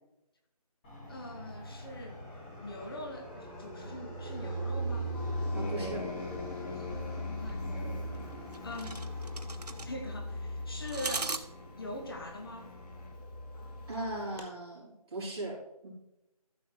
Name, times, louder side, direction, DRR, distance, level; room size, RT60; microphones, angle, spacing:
Fixed-wing aircraft airplane, 0.8-14.3, equal, 15° left, 1.7 m, -40 dB
voice 1, 1.1-2.2 2.6-5.1 6.5-9.0 9.7-11.3 11.8-12.7, left 1 dB, 40° left, 3 dB, 1.0 m, -43 dB
sound 1, 4.7-12.5, right 3 dB, 90° right, 0.9 m, -42 dB
sound 2, 5.1-14.5, left 3 dB, 80° left, 2.0 m, -46 dB
voice 2, 5.5-6.1 13.9-15.9, right 1 dB, 40° right, -4 dB, 3.4 m, -38 dB
13.5 x 6.1 x 3.1 m, 0.92 s
figure-of-eight pair, 165°, 20 cm